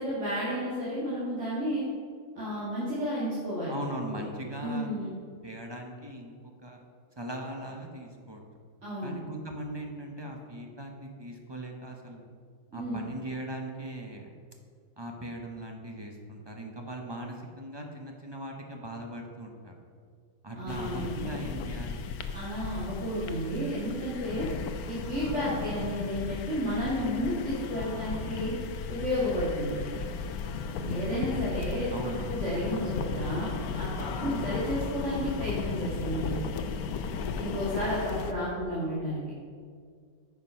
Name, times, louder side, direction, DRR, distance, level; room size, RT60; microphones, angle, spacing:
voice 1, 0.0-1.9 2.3-3.8 4.1-4.2 4.6-5.1 8.8-9.2 12.7-13.0 20.6-21.2 22.3-24.5 24.9-28.5 28.9-29.7 30.8-36.3 37.4-39.2, equal, 50° right, -9 dB, 2.3 m, -32 dB
voice 2, 3.7-4.9 5.4-6.8 7.2-8.4 9.0-12.3 12.7-14.3 15.0-19.7 20.4-22.1 31.9-32.4 34.2-34.5 37.1-37.4, right 1 dB, 20° right, 1 dB, 0.7 m, -39 dB
sound 1, 20.7-38.3, left 5 dB, 80° left, 1.1 m, -35 dB
9.4 x 6.0 x 5.6 m, 2.1 s
omnidirectional pair, 1.6 m